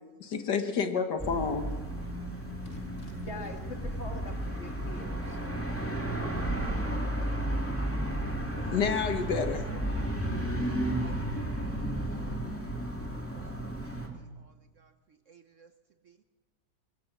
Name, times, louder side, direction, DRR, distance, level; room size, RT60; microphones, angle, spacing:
voice 1, 0.2-1.7 8.7-9.6, left 6 dB, 70° left, 7 dB, 2.0 m, -29 dB
sound 1, 1.2-14.1, right 1 dB, 5° left, 2.5 m, -33 dB
voice 2, 2.7-5.4, left 2 dB, 40° left, 3 dB, 2.6 m, -44 dB
voice 3, 8.6-9.0 11.0-11.4 12.1-12.4 13.1-13.5 14.2-14.9 15.3-15.7 16.1-16.2, right 5 dB, 55° right, 9 dB, 1.1 m, -56 dB
23.5 x 21.0 x 6.2 m, 1.3 s
omnidirectional pair, 1.9 m